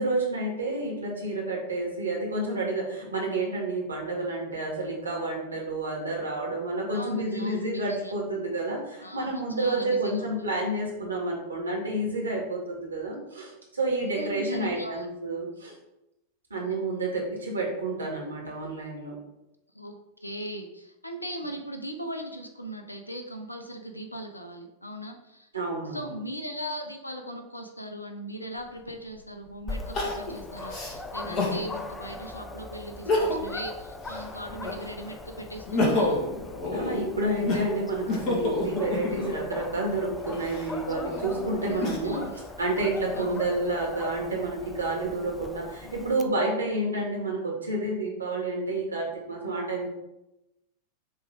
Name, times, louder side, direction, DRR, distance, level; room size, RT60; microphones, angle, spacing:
voice 1, 0.0-15.7 16.5-19.2 25.5-26.1 36.7-49.9, right 2 dB, 75° right, -2 dB, 2.0 m, -30 dB
voice 2, 6.9-8.1 9.0-10.5 14.2-15.1 19.7-25.5 25.9-36.2 41.6-42.3 43.1-43.5, equal, 85° left, 4 dB, 0.8 m, -39 dB
Crying sobbing, 28.6-28.7 29.9-31.6 32.2-32.3 32.9-33.6 34.0-35.0 35.5-39.5 40.2-42.3 42.8-43.6, left 2 dB, 40° left, 1.8 m, -29 dB
Dog, 29.7-46.2, left 2 dB, 10° left, 0.5 m, -40 dB
6.8 x 3.2 x 4.7 m, 0.92 s
figure-of-eight pair, 90°, 0 cm